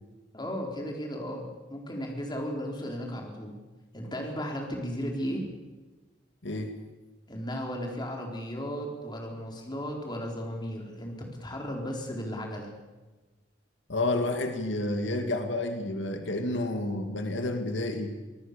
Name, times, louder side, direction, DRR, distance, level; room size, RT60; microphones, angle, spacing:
voice 1, 0.3-3.6 3.9-5.5 7.3-12.7, equal, 25° left, 1 dB, 4.5 m, -35 dB
voice 2, 13.9-18.1, left 2 dB, 85° left, 6 dB, 2.3 m, -30 dB
26.0 x 19.0 x 7.0 m, 1.2 s
head